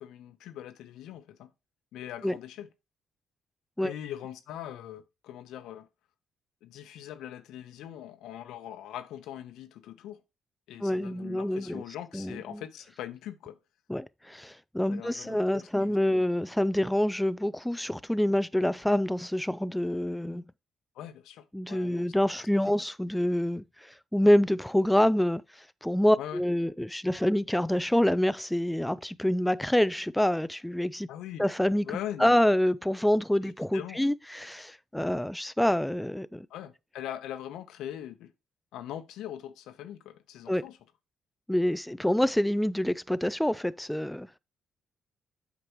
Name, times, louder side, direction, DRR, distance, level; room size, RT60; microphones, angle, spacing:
voice 1, 0.0-1.5 1.9-2.7 3.8-5.9 6.6-10.2 10.7-13.6 14.9-16.2 20.9-22.2 26.2-26.4 31.1-31.5 31.8-32.4 33.4-34.0 36.5-38.3 38.7-40.8, left 11 dB, 85° left, 0.9 m, -41 dB
voice 2, 10.8-11.8 12.1-12.6 13.9-20.4 21.5-25.4 25.8-31.1 31.4-31.8 32.2-36.5 40.5-40.6 41.5-44.3, left 1 dB, 5° left, 0.3 m, -26 dB
8.2 x 5.1 x 3.0 m
cardioid pair, 90°, 0 cm